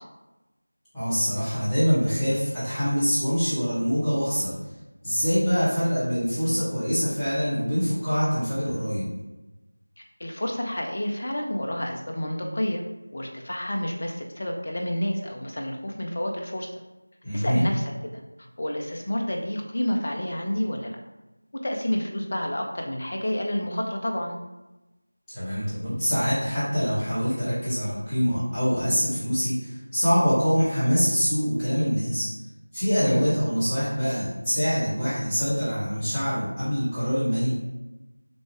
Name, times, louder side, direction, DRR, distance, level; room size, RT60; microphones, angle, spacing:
voice 1, 0.9-4.5 5.0-9.1 17.2-17.7 25.3-32.3 32.7-37.5, equal, 5° left, -20 dB, 1.3 m, -24 dB
voice 2, 10.2-12.8 13.1-16.7 17.3-18.1 18.4-21.0 21.6-24.4 33.0-33.3, left 1 dB, 35° left, 1 dB, 0.6 m, -29 dB
6.0 x 2.4 x 3.2 m, 1.1 s
figure-of-eight pair, 175°, 0 cm